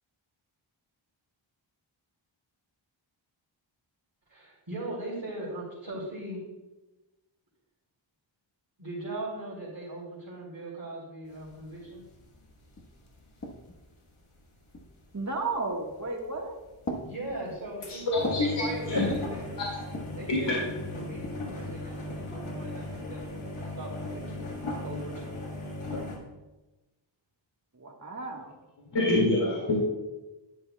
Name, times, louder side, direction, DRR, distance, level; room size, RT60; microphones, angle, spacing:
voice 1, 4.3-6.4 8.8-12.0 17.0-19.6 20.1-24.6 24.8-25.5, right 2 dB, 50° right, -10 dB, 3.3 m, -39 dB
sound 1, 11.3-14.1 15.1-15.2 15.5-15.6 15.9-16.0 16.2-16.6 17.0-17.1 17.6-26.2, left 2 dB, 85° left, 1.6 m, -37 dB
sound 2, 12.8-13.9 14.7-15.2 16.0-16.4 16.8-18.6 18.9-19.4 19.8-20.3 21.0-22.0, left 1 dB, 35° left, 1.3 m, -41 dB
voice 2, 15.1-16.5 27.7-28.5, right 3 dB, 35° right, 1 dB, 1.6 m, -33 dB
voice 3, 17.9-19.0 19.6-19.7 20.3-20.6 28.9-29.9, left 2 dB, 55° left, -3 dB, 2.3 m, -26 dB
11.0 x 10.5 x 2.3 m, 1.1 s
wide cardioid pair, 70°, 48 cm